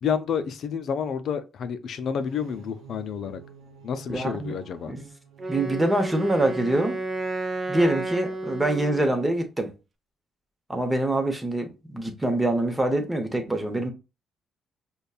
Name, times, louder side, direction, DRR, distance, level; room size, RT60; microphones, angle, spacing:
voice 1, 0.0-3.4 3.8-4.9, left 7 dB, 65° left, 0.4 m, -29 dB
sound 1, 2.1-8.0, right 4 dB, 80° right, 0.8 m, -51 dB
voice 2, 4.1-4.5 4.9-5.1 5.5-7.0 7.7-9.7 10.7-13.9, right 1 dB, 15° right, 0.9 m, -25 dB
Wind instrument woodwind instrument, 5.4-9.4, right 2 dB, 40° right, 0.7 m, -32 dB
5.1 x 2.3 x 2.3 m
cardioid pair, 90°, 0 cm